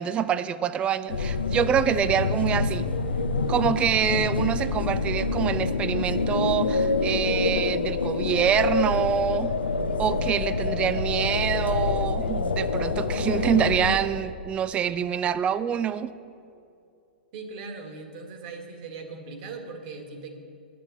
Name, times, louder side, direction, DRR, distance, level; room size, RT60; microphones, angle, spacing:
voice 1, 0.0-2.9 3.5-9.5 10.0-16.1, right 9 dB, 20° right, 14 dB, 0.3 m, -26 dB
sound 1, 1.1-14.0, left 4 dB, 85° left, 0.7 m, -26 dB
voice 2, 17.3-20.4, right 4 dB, 50° right, 4 dB, 1.7 m, -39 dB
11.0 x 6.9 x 7.3 m, 2.5 s
figure-of-eight pair, 110°, 5 cm